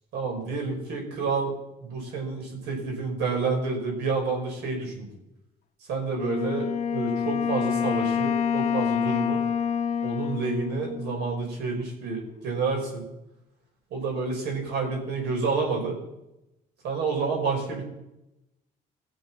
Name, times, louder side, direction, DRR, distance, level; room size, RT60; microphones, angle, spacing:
voice 1, 0.1-1.5 1.8-5.1 5.9-9.4 10.0-13.1 13.9-16.0 16.8-17.8, right 4 dB, 80° right, 0 dB, 5.4 m, -29 dB
Wind instrument woodwind instrument, 6.2-11.6, left 7 dB, 45° left, 1.0 m, -27 dB
19.5 x 7.1 x 5.9 m, 0.89 s
cardioid pair, 110°, 17 cm